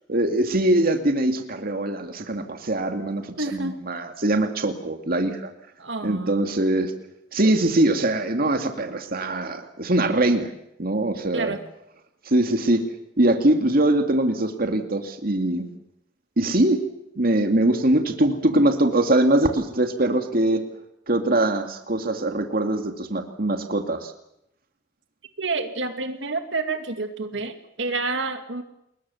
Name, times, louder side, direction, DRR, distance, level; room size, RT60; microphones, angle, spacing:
voice 1, 0.1-5.5 6.0-6.9 7.3-10.5 10.8-11.6 12.3-12.8 13.2-15.7 16.4-16.8 17.2-20.6 21.1-24.1, right 1 dB, 50° right, 6 dB, 2.4 m, -22 dB
voice 2, 3.4-3.7 5.8-6.3 11.3-11.6 25.4-28.6, right 3 dB, 70° right, 7 dB, 2.3 m, -28 dB
30.0 x 21.5 x 7.2 m, 0.79 s
head